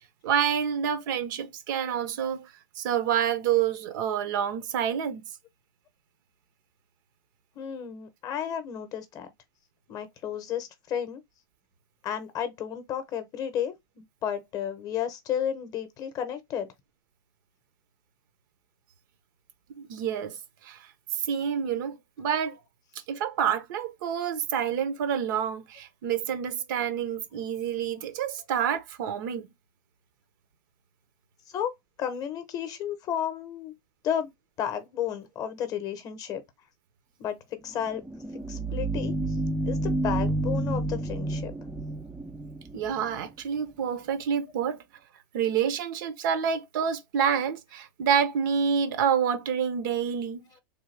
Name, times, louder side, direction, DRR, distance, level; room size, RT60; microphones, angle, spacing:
voice 1, 0.2-5.2 19.8-20.9 21.3-22.6 23.1-29.5 42.7-44.8 45.3-50.4, right 8 dB, 60° right, 0.7 m, -28 dB
voice 2, 7.5-9.3 9.9-11.2 12.0-16.7 31.5-31.7 32.0-33.7 34.0-34.3 34.6-36.4 37.2-37.4 37.6-38.0 38.5-39.2 39.7-41.5, left 9 dB, 30° left, 0.7 m, -32 dB
sound 1, 37.7-43.3, right 2 dB, 5° right, 0.3 m, -30 dB
3.4 x 2.3 x 3.2 m
hypercardioid pair, 130°, 12 cm